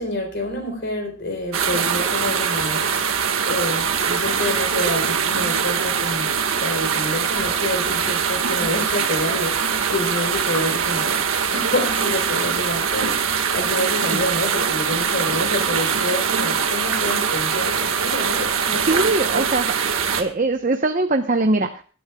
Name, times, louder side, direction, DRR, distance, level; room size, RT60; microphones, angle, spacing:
voice 1, 0.0-3.2 3.5-6.3 6.6-11.2 11.5-19.0 19.3-19.5, left 1 dB, 55° left, 5 dB, 3.9 m, -28 dB
sound 1, 1.5-20.2, right 6 dB, 80° right, 1.7 m, -22 dB
voice 2, 18.9-19.6 20.2-21.8, right 2 dB, 40° right, 6 dB, 0.9 m, -21 dB
24.0 x 12.0 x 2.3 m, 0.39 s
head